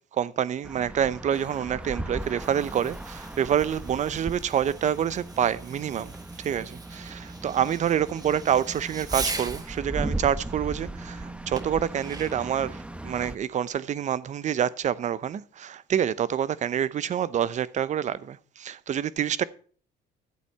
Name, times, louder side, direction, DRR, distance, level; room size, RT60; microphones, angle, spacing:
voice 1, 0.1-6.1 6.4-19.4, right 9 dB, 45° right, 0.7 m, -27 dB
sound 1, 0.6-13.4, right 2 dB, 5° right, 1.0 m, -37 dB
Fireworks, 2.1-9.8 11.6-12.6, right 3 dB, 20° right, 1.6 m, -40 dB
11.5 x 8.2 x 5.6 m
cardioid pair, 110°, 17 cm